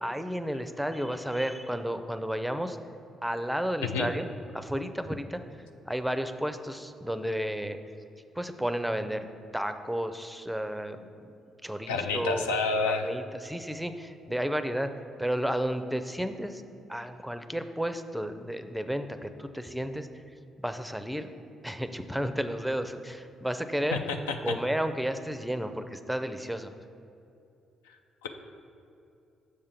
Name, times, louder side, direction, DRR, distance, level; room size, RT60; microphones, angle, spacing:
voice 1, 0.0-2.8 3.2-4.3 4.5-5.4 5.8-7.8 8.4-9.3 9.5-11.1 11.6-12.5 12.9-14.9 15.2-16.6 16.9-20.1 20.6-21.3 21.6-24.0 24.4-26.7, equal, ahead, 9 dB, 0.5 m, -32 dB
voice 2, 11.9-13.1 23.9-24.6 27.9-28.3, left 4 dB, 85° left, 5 dB, 0.4 m, -30 dB
6.6 x 3.7 x 5.8 m, 2.7 s
hypercardioid pair, 50°, 0 cm